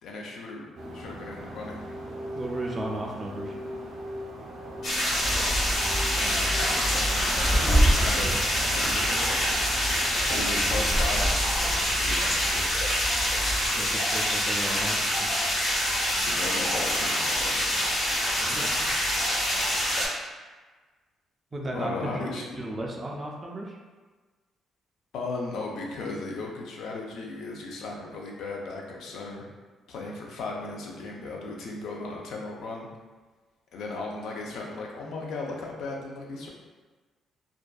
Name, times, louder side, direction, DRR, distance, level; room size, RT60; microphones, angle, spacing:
voice 1, 0.0-1.8 5.1-5.8 6.2-9.4 10.3-12.7 16.2-17.8 21.7-22.7 25.1-29.5 29.9-32.9 33.7-36.5, left 3 dB, 80° left, -1 dB, 0.4 m, -37 dB
sound 1, 0.7-10.6, equal, 80° right, 0.5 m, -40 dB
voice 2, 2.3-3.5 8.8-9.2 13.7-15.4 18.4-18.9 21.5-23.8, right 1 dB, 30° right, -1 dB, 0.4 m, -35 dB
sound 2, 4.8-20.1, equal, 65° left, 1.2 m, -26 dB
sound 3, 5.2-13.7, equal, 35° left, 0.9 m, -29 dB
2.5 x 2.2 x 2.2 m, 1.3 s
cardioid pair, 90°, 0 cm